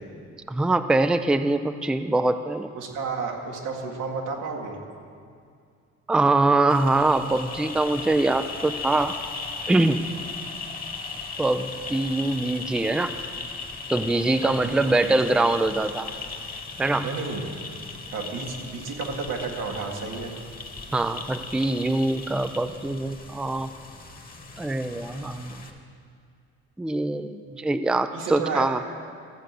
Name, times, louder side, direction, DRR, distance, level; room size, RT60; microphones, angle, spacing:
voice 1, 0.5-2.7 6.1-9.2 9.7-10.1 11.4-13.1 13.9-16.1 16.8-17.1 20.9-23.7 24.6-25.6 26.8-28.8, right 2 dB, 5° right, 9 dB, 0.4 m, -23 dB
voice 2, 2.7-4.8 14.4-14.5 14.8-15.1 17.0-17.4 18.1-20.3 28.1-28.7, right 4 dB, 85° right, 0 dB, 1.9 m, -31 dB
sound 1, 6.7-25.7, left 4 dB, 30° left, 1.5 m, -37 dB
14.5 x 7.7 x 6.8 m, 2.3 s
cardioid pair, 90°, 30 cm